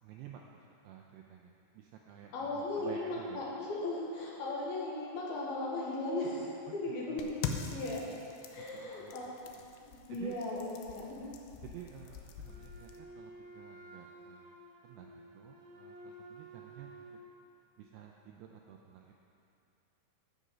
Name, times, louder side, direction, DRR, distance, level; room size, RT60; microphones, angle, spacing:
voice 1, 0.0-3.5 6.7-6.8 7.1-7.3 8.7-9.1 9.6-9.7 10.1-10.4 11.6-14.6 14.8-17.0 17.8-19.1, right 9 dB, 85° right, 1 dB, 2.4 m, -51 dB
voice 2, 2.3-7.4 7.7-8.1 8.5-9.3 9.8-10.7 11.0-11.3, left 2 dB, 65° left, -4 dB, 2.9 m, -37 dB
sound 1, 7.2-13.0, left 6 dB, 85° left, 2.2 m, -44 dB
Wind instrument woodwind instrument, 12.4-17.3, right 1 dB, 70° right, 2.7 m, -52 dB
15.0 x 6.7 x 5.0 m, 2.6 s
omnidirectional pair, 5.4 m